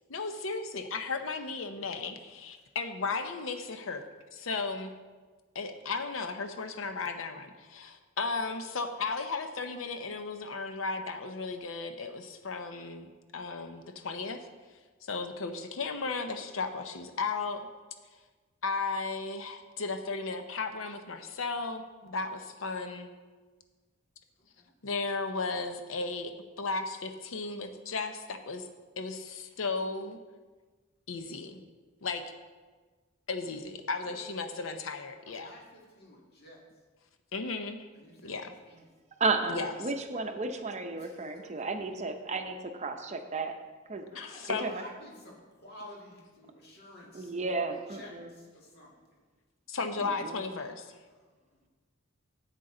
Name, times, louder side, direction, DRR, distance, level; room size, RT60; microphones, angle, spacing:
voice 1, 0.1-4.0 4.3-4.9 5.5-14.5 15.1-17.6 18.6-23.1 24.8-28.7 29.0-30.2 31.1-31.6 32.0-32.2 33.3-35.5 37.3-37.9 38.2-38.5 39.5-39.7 44.1-44.7 49.7-51.0, left 4 dB, 75° left, 7 dB, 0.7 m, -35 dB
voice 2, 24.4-24.7 34.0-34.4 35.2-36.6 37.9-38.9 41.0-41.7 44.1-47.4 47.9-49.2 51.1-51.7, left 1 dB, 50° left, -2 dB, 2.0 m, -52 dB
voice 3, 39.2-43.5 43.9-44.1 44.5-44.8 47.1-48.3 50.0-50.4, right 3 dB, 35° right, 6 dB, 0.7 m, -33 dB
10.5 x 8.2 x 3.8 m, 1.4 s
head